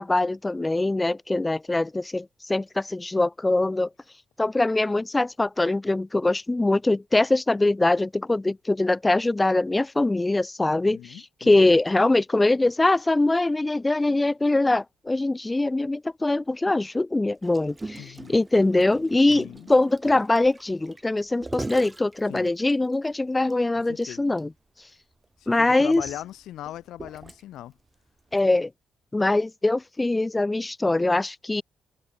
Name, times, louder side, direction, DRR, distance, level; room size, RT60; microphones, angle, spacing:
voice 1, 0.0-3.9 4.4-24.5 25.5-26.0 28.3-28.7 29.1-31.6, left 2 dB, 15° left, 1.1 m, -23 dB
voice 2, 10.6-11.6 18.0-18.4 19.3-19.7 22.3-22.5 23.8-24.2 25.4-27.7, left 13 dB, 80° left, 1.9 m, -40 dB
Gurgling, 17.4-22.9 23.5-23.6 23.9-24.1 24.4-24.5 25.2-27.7 28.4-28.5, right 2 dB, 15° right, 1.9 m, -40 dB
open air
cardioid pair, 90°, 0 cm